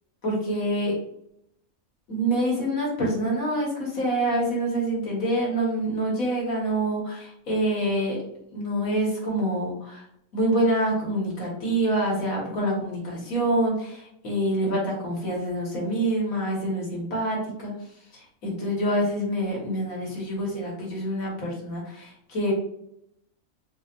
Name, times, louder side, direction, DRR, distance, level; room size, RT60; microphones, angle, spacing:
voice 1, 0.2-0.9 2.1-8.2 8.5-10.0 10.3-17.7 18.1-22.5, right 1 dB, 70° left, -3 dB, 1.8 m, -26 dB
4.1 x 3.0 x 2.5 m, 0.76 s
omnidirectional pair, 1.5 m